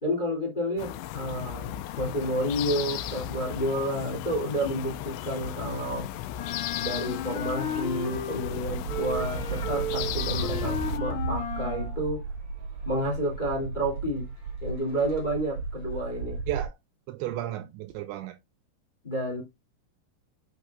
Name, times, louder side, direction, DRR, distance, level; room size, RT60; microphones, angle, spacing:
voice 1, 0.0-6.1 6.8-12.2 12.8-14.3 14.6-16.4 19.0-19.4, equal, 35° left, 0.7 m, -30 dB
sound 1, 0.8-11.0, left 12 dB, 85° left, 2.6 m, -36 dB
Wind instrument woodwind instrument, 6.3-8.6 8.8-12.0, left 3 dB, 60° left, 3.6 m, -34 dB
sound 2, 8.4-16.7, right 4 dB, 45° right, 2.1 m, -34 dB
voice 2, 17.1-18.4, right 14 dB, 85° right, 2.7 m, -33 dB
10.0 x 5.8 x 2.4 m
omnidirectional pair, 5.8 m